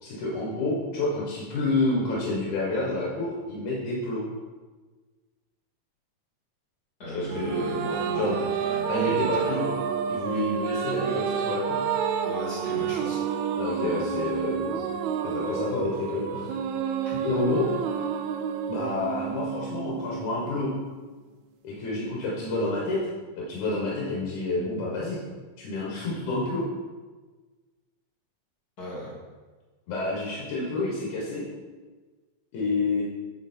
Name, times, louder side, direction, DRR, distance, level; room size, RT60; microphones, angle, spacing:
voice 1, 0.0-4.2 7.1-7.7 8.1-8.4 8.9-9.7 10.1-11.8 13.6-14.8 15.2-16.5 17.2-17.7 18.7-20.7 21.6-23.0 23.3-25.2 25.6-26.6 29.9-31.4 32.5-33.0, left 2 dB, 80° left, -5 dB, 2.9 m, -29 dB
voice 2, 7.0-9.7 12.2-13.2 17.0-17.2 28.8-29.1, left 1 dB, 30° left, -7 dB, 2.9 m, -37 dB
sound 1, 7.3-20.9, right 7 dB, 85° right, 1.9 m, -29 dB
8.5 x 6.7 x 4.4 m, 1.3 s
omnidirectional pair, 3.4 m